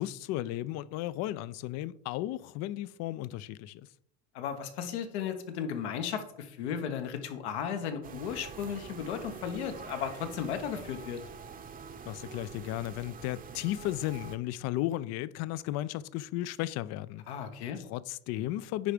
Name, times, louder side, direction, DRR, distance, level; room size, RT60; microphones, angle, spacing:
voice 1, 0.0-3.9 12.1-17.2 17.8-18.9, left 14 dB, 50° left, 0.5 m, -34 dB
voice 2, 4.3-11.2 17.3-17.8, left 8 dB, 80° left, 1.3 m, -35 dB
sound 1, 8.0-14.4, right 6 dB, 25° right, 0.8 m, -46 dB
9.8 x 3.3 x 5.1 m
supercardioid pair, 105°, 33 cm